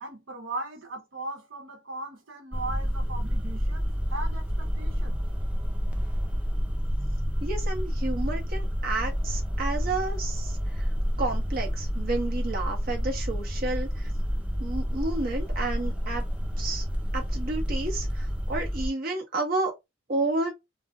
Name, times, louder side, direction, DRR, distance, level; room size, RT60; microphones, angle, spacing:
voice 1, 0.0-5.2, right 2 dB, 90° right, 0.9 m, -38 dB
sound 1, 2.5-18.9, equal, 5° right, 0.4 m, -29 dB
voice 2, 7.4-10.8 11.2-14.1 14.6-16.2 16.6-16.8 17.1-19.7 20.1-20.5, right 2 dB, 50° right, 0.8 m, -31 dB
2.5 x 2.1 x 3.5 m
head